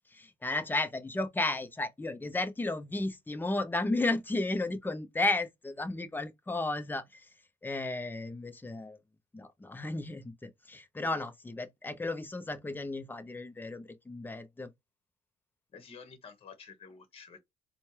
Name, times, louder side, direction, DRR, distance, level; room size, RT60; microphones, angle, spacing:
voice 1, 0.1-7.2 7.6-9.0 9.3-14.7, left 2 dB, 10° left, 0.7 m, -33 dB
voice 2, 15.7-17.4, left 5 dB, 35° left, 1.2 m, -50 dB
4.2 x 2.3 x 3.2 m
cardioid pair, 110°, 17 cm